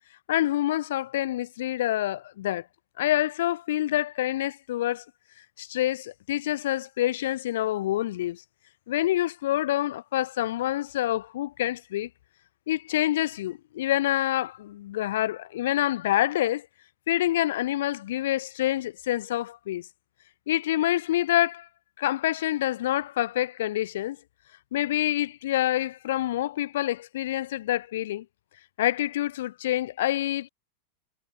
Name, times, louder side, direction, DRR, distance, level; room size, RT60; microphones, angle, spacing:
voice 1, 0.3-2.6 3.0-5.0 5.6-8.4 8.9-12.1 12.7-16.7 17.1-19.8 20.5-21.7 22.0-24.2 24.7-28.2 28.8-30.5, left 14 dB, 55° left, 0.7 m, -27 dB
figure-of-eight pair, 90°, 0 cm